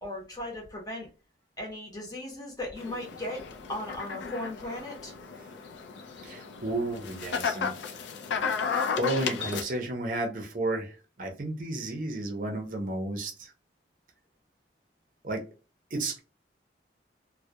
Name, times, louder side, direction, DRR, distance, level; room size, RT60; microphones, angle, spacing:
voice 1, 0.0-1.1 1.6-5.1, left 1 dB, 20° left, 0 dB, 0.7 m, -37 dB
sound 1, 2.8-9.6, left 6 dB, 80° left, 0.4 m, -34 dB
voice 2, 6.2-8.0 8.9-13.5 15.2-15.4 15.9-16.2, right 2 dB, 45° right, 4 dB, 0.5 m, -32 dB
2.2 x 2.0 x 2.7 m, 0.33 s
head